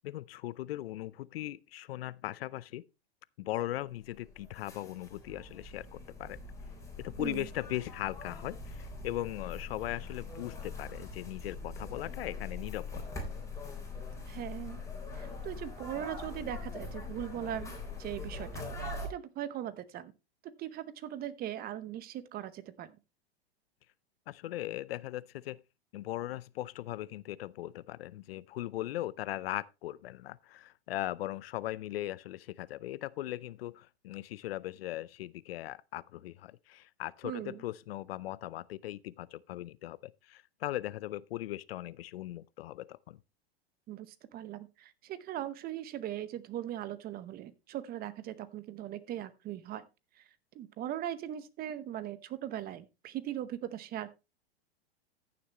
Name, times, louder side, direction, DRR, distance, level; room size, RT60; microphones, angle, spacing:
voice 1, 0.0-2.8 3.4-6.4 7.0-13.0 24.3-25.6 25.9-43.2, left 15 dB, 70° left, 0.6 m, -39 dB
sound 1, 4.0-19.1, left 3 dB, 10° left, 3.6 m, -42 dB
voice 2, 7.2-7.5 14.3-14.8 15.1-20.1 20.4-23.0 37.2-37.6 43.9-49.9 50.1-50.3 50.5-54.1, right 12 dB, 30° right, 0.9 m, -40 dB
14.5 x 6.9 x 3.0 m
hypercardioid pair, 120°, 32 cm